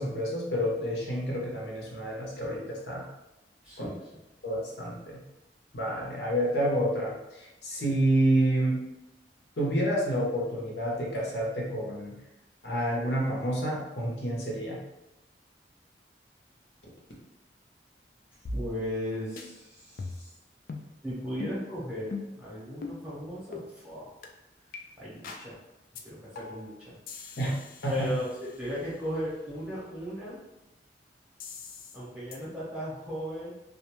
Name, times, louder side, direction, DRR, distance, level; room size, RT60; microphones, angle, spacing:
voice 1, 0.0-3.1 3.8-3.9 4.4-5.2 5.7-8.8 9.6-12.2 12.6-14.8 27.4-27.5 27.8-28.1, right 1 dB, 70° left, -3 dB, 0.7 m, -29 dB
voice 2, 3.6-4.1 18.5-20.3 21.0-24.2 25.0-25.6 26.0-27.0 27.3-27.4 27.9-30.4 31.9-33.5, equal, 5° right, -9 dB, 0.8 m, -36 dB
sound 1, 18.5-19.1 19.4-19.5 20.0-20.3 20.7-20.9 21.4-21.6 22.1-22.4 22.8-23.0 23.5-23.7 24.2-24.3 24.7-24.8 25.2-25.5 26.0-26.1 26.4-26.7 27.1-28.9 31.4-32.0 32.3-32.4, left 3 dB, 50° left, 0.3 m, -40 dB
2.4 x 2.2 x 2.9 m, 0.95 s
head